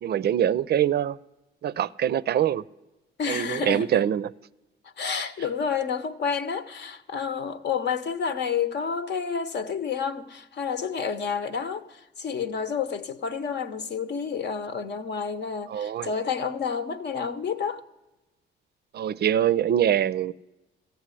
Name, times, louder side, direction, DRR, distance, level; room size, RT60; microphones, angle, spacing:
voice 1, 0.0-1.2 1.6-2.6 3.3-4.3 15.7-16.1 18.9-20.3, right 10 dB, 55° right, 0.4 m, -24 dB
voice 2, 3.2-4.1 5.0-17.8, left 6 dB, 60° left, 1.0 m, -30 dB
14.5 x 8.0 x 9.8 m
cardioid pair, 90°, 20 cm